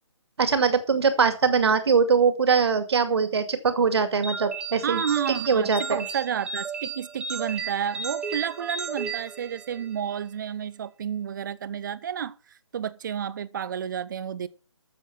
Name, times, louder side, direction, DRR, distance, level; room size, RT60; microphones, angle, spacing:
voice 1, 0.4-5.0 5.5-6.0, right 5 dB, 60° right, 2.3 m, -22 dB
sound 1, 4.2-10.0, right 5 dB, 5° right, 1.1 m, -34 dB
voice 2, 4.8-12.3 12.7-14.5, right 8 dB, 40° right, 0.8 m, -31 dB
13.0 x 7.2 x 5.8 m
figure-of-eight pair, 150°, 15 cm